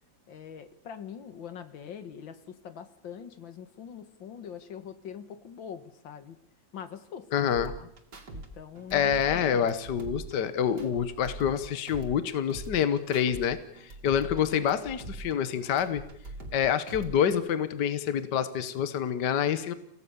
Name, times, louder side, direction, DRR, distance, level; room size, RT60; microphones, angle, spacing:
voice 1, 0.3-6.4 6.7-7.3 7.6-7.9 8.3-9.7, left 8 dB, 85° left, 11 dB, 2.2 m, -43 dB
voice 2, 7.3-7.7 8.9-16.0 16.5-19.7, left 8 dB, 65° left, 12 dB, 1.7 m, -27 dB
sound 1, 7.5-8.5 8.8-11.6 11.9-13.5 13.8-16.6 16.9-17.5, right 2 dB, 60° right, 3.2 m, -43 dB
29.5 x 17.0 x 7.0 m, 0.74 s
omnidirectional pair, 2.1 m